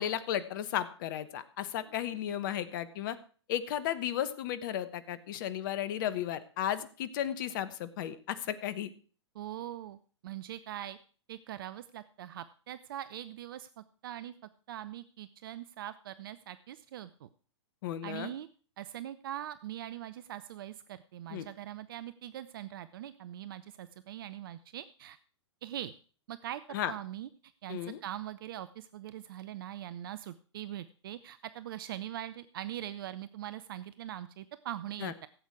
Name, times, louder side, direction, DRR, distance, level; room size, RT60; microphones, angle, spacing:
voice 1, 0.0-3.2 3.5-8.9 17.8-18.3 21.3-21.5 26.7-26.9 27.7-28.0 35.0-35.1, left 10 dB, 45° left, 14 dB, 1.1 m, -34 dB
voice 2, 9.3-10.0 10.2-11.0 11.3-14.3 14.7-17.3 18.0-18.5 18.8-25.2 25.6-25.9 26.3-27.3 27.6-35.3, right 12 dB, 50° right, 14 dB, 0.6 m, -42 dB
16.0 x 8.3 x 4.8 m, 0.41 s
figure-of-eight pair, 105°, 15 cm